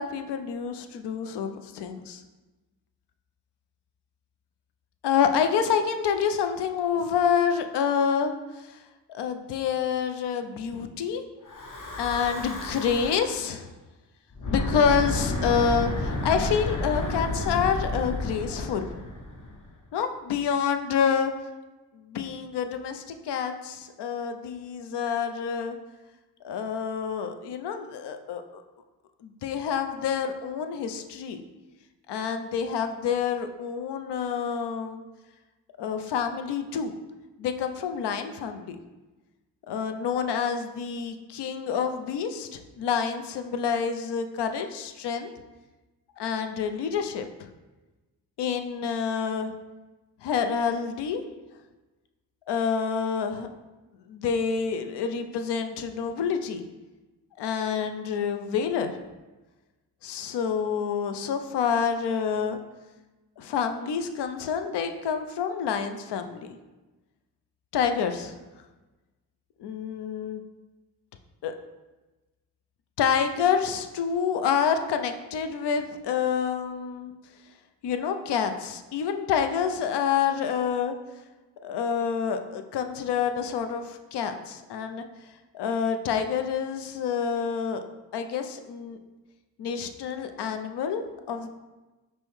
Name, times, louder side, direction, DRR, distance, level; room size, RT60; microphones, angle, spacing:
voice 1, 0.0-2.2 5.0-8.8 9.1-11.2 12.0-13.7 14.4-18.9 19.9-21.3 21.9-25.8 26.4-28.6 29.2-31.4 32.1-35.0 35.8-36.9 37.4-38.8 39.7-45.3 46.2-47.5 48.4-49.5 50.2-51.2 52.5-53.5 54.1-56.7 57.4-58.9 60.0-62.6 63.4-66.6 67.7-68.4 69.6-70.4 71.4-71.5 73.0-77.1 77.8-81.0 81.6-85.0 85.5-87.8 88.1-89.0 89.6-91.5, left 7 dB, 70° left, 7 dB, 0.5 m, -28 dB
Breathing / Wind, 11.5-13.4 14.3-19.7, left 2 dB, 45° left, 0.8 m, -31 dB
5.3 x 2.1 x 3.1 m, 1.1 s
supercardioid pair, 45°, 43 cm